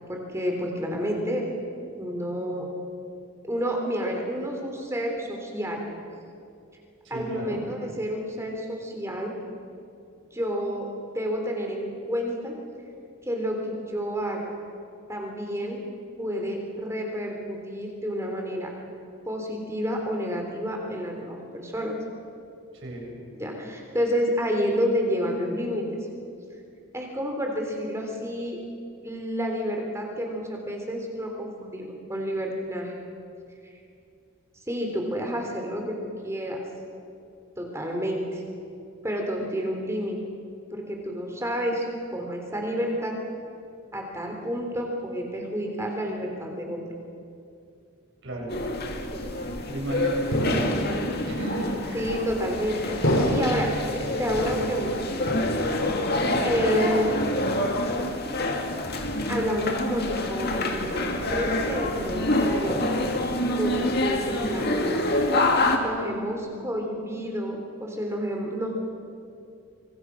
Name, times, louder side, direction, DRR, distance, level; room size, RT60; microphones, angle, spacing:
voice 1, 0.1-1.5 2.0-2.7 3.4-5.8 7.1-9.3 10.3-10.9 11.1-12.6 13.2-14.4 15.1-15.8 16.2-18.7 19.2-21.9 23.3-26.0 26.9-28.6 29.0-32.9 33.6-33.7 34.7-36.0 36.2-36.6 37.6-38.4 39.0-40.2 40.7-41.9 42.1-43.1 43.9-46.8 49.1-49.2 51.9-53.7 54.0-55.4 56.4-57.2 59.3-62.8 63.5-65.1 65.7-68.7, equal, 15° right, 1 dB, 3.5 m, -29 dB
voice 2, 7.0-7.6 22.7-23.1 48.2-48.5 49.6-52.1 56.2-56.5, right 1 dB, 55° right, 0 dB, 6.5 m, -33 dB
sound 1, 48.5-65.8, left 1 dB, 45° left, 2.1 m, -27 dB
sound 2, 50.3-51.2 52.0-52.5 53.0-53.8 54.3-55.0 55.3-56.0 56.3-56.8 57.2-57.8, equal, 60° left, 3.3 m, -28 dB
25.5 x 24.0 x 6.1 m, 2.5 s
head